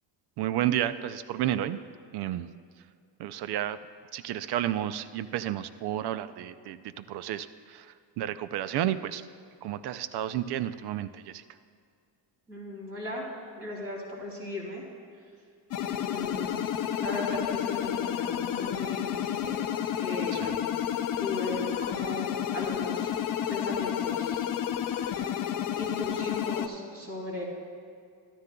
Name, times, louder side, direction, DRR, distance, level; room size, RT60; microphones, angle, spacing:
voice 1, 0.4-1.8 2.1-2.5 3.2-3.8 4.1-9.2 9.6-11.4 20.3-20.6, right 12 dB, 60° right, 13 dB, 0.5 m, -31 dB
voice 2, 12.5-13.3 13.6-14.8 16.0-19.6 20.0-20.7 21.2-23.1 23.5-24.4 24.8-25.2 25.7-27.4, left 2 dB, 30° right, -3 dB, 2.8 m, -37 dB
sound 1, 15.7-26.7, left 10 dB, 50° left, 0.5 m, -31 dB
13.5 x 13.0 x 2.3 m, 2.3 s
cardioid pair, 150°, 45 cm